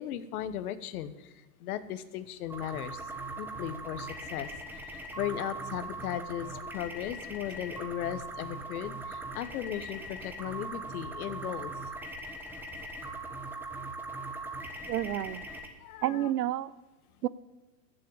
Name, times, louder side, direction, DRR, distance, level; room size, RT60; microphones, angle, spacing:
voice 1, 0.0-1.3 1.6-3.0 3.4-4.8 5.1-11.7 15.8-16.3, left 11 dB, 60° left, 13 dB, 1.3 m, -37 dB
sound 1, 2.5-15.7, right 2 dB, 5° right, 1.4 m, -40 dB
voice 2, 14.9-15.5 16.0-16.7 17.2-17.3, right 13 dB, 70° right, 18 dB, 0.9 m, -30 dB
14.5 x 7.7 x 8.7 m, 1.2 s
hypercardioid pair, 140°, 50 cm